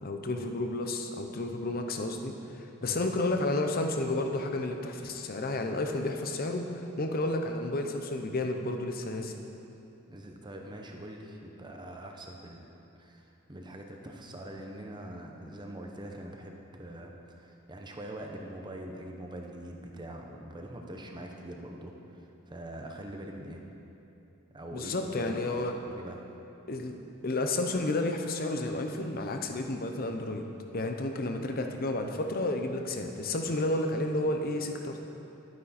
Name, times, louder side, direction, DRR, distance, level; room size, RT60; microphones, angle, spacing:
voice 1, 0.0-9.3 24.7-25.7 26.7-30.5 30.7-35.0, left 2 dB, 45° left, 4 dB, 0.7 m, -31 dB
voice 2, 10.1-23.6 24.5-26.2, right 1 dB, 20° right, 2 dB, 0.9 m, -43 dB
11.5 x 9.4 x 4.3 m, 2.8 s
head